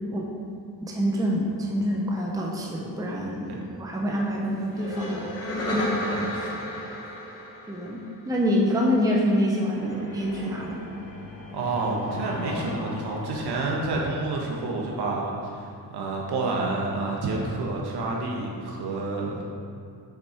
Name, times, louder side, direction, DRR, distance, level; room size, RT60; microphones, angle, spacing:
voice 1, 0.8-5.8 7.7-8.0 8.3-10.8, equal, 10° right, -2 dB, 0.7 m, -26 dB
sound 1, 4.7-8.4 9.7-14.4, left 1 dB, 35° left, 1.4 m, -34 dB
voice 2, 6.0-6.6 11.5-19.4, right 3 dB, 65° right, -1 dB, 1.4 m, -29 dB
6.7 x 6.6 x 4.5 m, 2.4 s
wide cardioid pair, 160°, 42 cm